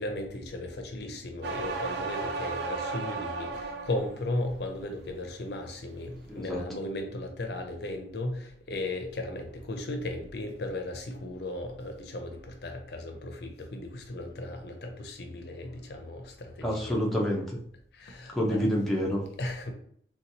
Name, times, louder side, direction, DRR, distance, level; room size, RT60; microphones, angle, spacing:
voice 1, 0.0-17.0 17.9-18.7 19.4-19.7, left 1 dB, 65° left, 4 dB, 0.6 m, -36 dB
sound 1, 1.4-4.1 4.6-5.1, right 4 dB, 65° right, 0.4 m, -34 dB
voice 2, 6.3-6.6 16.6-17.6 18.3-19.2, equal, ahead, -3 dB, 0.6 m, -28 dB
4.0 x 2.3 x 2.7 m, 0.64 s
head